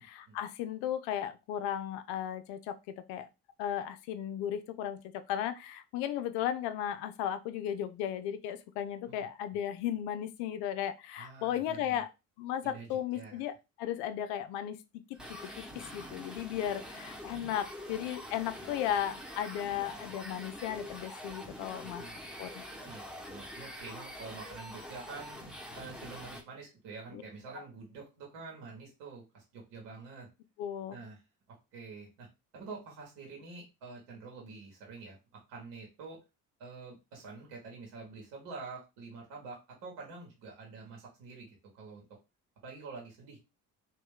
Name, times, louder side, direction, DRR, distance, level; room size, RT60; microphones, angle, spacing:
voice 1, 0.0-2.8 3.1-3.3 3.6-12.1 12.4-14.8 15.3-15.6 15.9-22.0 22.4-22.6 27.1-27.2 30.6-31.0, left 10 dB, 65° left, 10 dB, 0.6 m, -35 dB
voice 2, 11.2-12.0 12.6-13.4 18.6-18.7 21.8-22.2 22.8-25.4 25.7-30.3 30.9-31.2 31.7-32.3 32.5-35.2 35.5-36.2 36.6-42.0 42.6-43.4, right 4 dB, 65° right, -1 dB, 1.5 m, -47 dB
sound 1, 15.1-26.4, equal, ahead, 1.1 m, -45 dB
3.0 x 2.7 x 3.6 m, 0.26 s
figure-of-eight pair, 45°, 45 cm